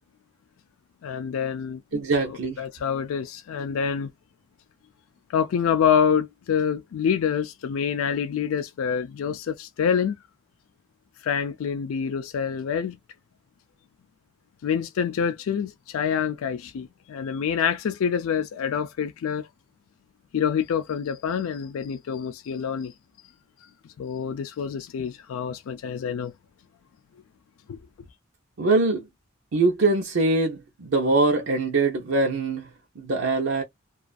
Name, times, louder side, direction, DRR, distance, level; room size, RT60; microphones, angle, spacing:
voice 1, 1.0-1.8 2.2-4.1 5.3-10.2 11.2-13.0 14.6-19.5 20.3-22.9 23.6-23.7 24.0-26.3 27.7-27.8, left 7 dB, 80° left, 0.3 m, -26 dB
voice 2, 1.9-2.6 28.6-29.1 29.5-32.7 33.0-33.6, right 3 dB, 75° right, 0.6 m, -23 dB
2.4 x 2.4 x 2.3 m
head